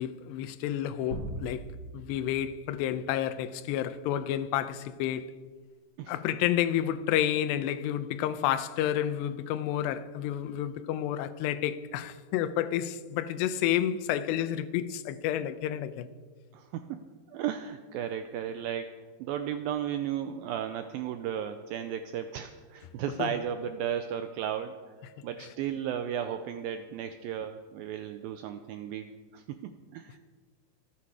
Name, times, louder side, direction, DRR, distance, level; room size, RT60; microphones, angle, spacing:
voice 1, 0.0-5.3 6.1-16.1 23.2-23.3 25.4-25.5, left 11 dB, 85° left, 2.9 m, -30 dB
sound 1, 1.1-3.7, right 1 dB, 35° right, 2.7 m, -41 dB
voice 2, 16.5-17.0 17.3-18.9 19.2-24.8 25.2-30.2, right 9 dB, 90° right, 2.1 m, -34 dB
26.0 x 8.8 x 4.8 m
omnidirectional pair, 4.8 m